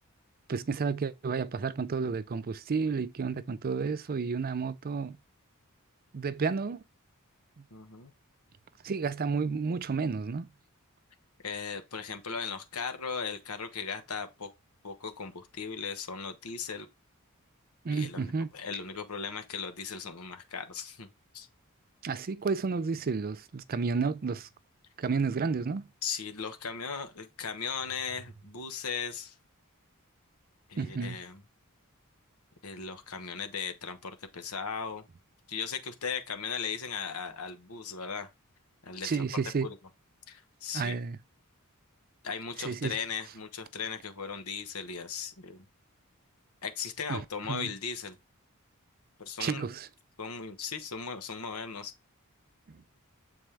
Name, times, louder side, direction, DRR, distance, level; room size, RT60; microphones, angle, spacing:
voice 1, 0.5-5.2 6.1-6.8 8.8-10.5 17.8-18.5 22.0-24.5 25.0-25.8 30.8-31.2 39.0-39.7 40.7-41.2 42.6-42.9 47.1-47.2 47.5-47.7 49.4-49.9, right 5 dB, 40° right, 0.4 m, -31 dB
voice 2, 7.7-8.1 11.4-14.5 14.8-16.9 17.9-21.1 21.3-21.5 26.0-29.3 30.7-31.4 32.6-35.1 35.5-38.3 38.8-39.2 39.6-39.8 40.3-41.0 42.2-45.6 46.6-48.2 49.2-49.7 50.2-51.9, left 6 dB, 85° left, 1.2 m, -37 dB
7.4 x 4.2 x 3.3 m
head